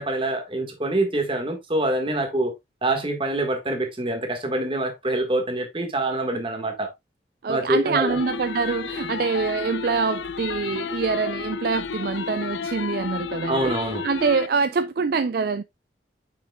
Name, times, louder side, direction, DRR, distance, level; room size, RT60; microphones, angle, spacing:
voice 1, 0.0-2.5 2.8-6.9 7.5-8.2 13.5-14.0, right 1 dB, 30° right, 1.5 m, -25 dB
voice 2, 7.4-13.7 14.0-15.6, right 5 dB, 55° right, 0.4 m, -25 dB
sound 1, 8.1-14.5, left 6 dB, 80° left, 0.5 m, -32 dB
7.1 x 6.0 x 2.2 m
head